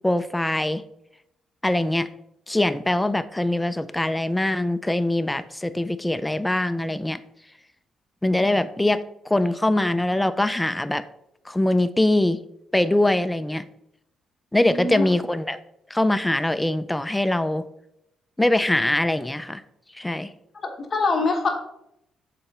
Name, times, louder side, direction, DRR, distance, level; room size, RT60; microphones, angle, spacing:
voice 1, 0.0-0.8 1.6-2.1 2.5-7.2 8.2-11.0 11.5-12.4 12.7-13.7 14.5-15.6 15.9-17.6 18.4-19.6 19.9-20.3, left 1 dB, 10° left, 13 dB, 0.4 m, -23 dB
voice 2, 14.6-15.0 20.5-21.6, left 3 dB, 35° left, 2 dB, 1.2 m, -24 dB
6.7 x 4.1 x 3.6 m, 0.80 s
cardioid pair, 90°, 0 cm